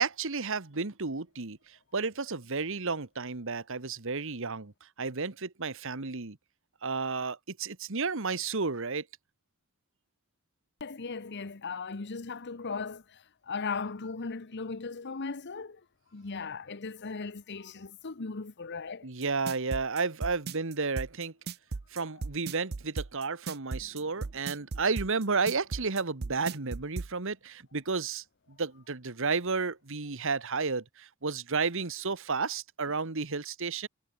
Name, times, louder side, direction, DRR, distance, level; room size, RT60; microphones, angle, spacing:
voice 1, 0.0-1.6 1.9-4.7 5.0-6.4 6.8-9.0 19.0-21.3 21.9-28.2 28.6-33.9, right 4 dB, 65° right, 1.5 m, -32 dB
voice 2, 10.8-15.8 16.1-19.1, left 4 dB, 55° left, 1.0 m, -37 dB
sound 1, 19.2-27.1, right 4 dB, 50° right, 0.6 m, -36 dB
head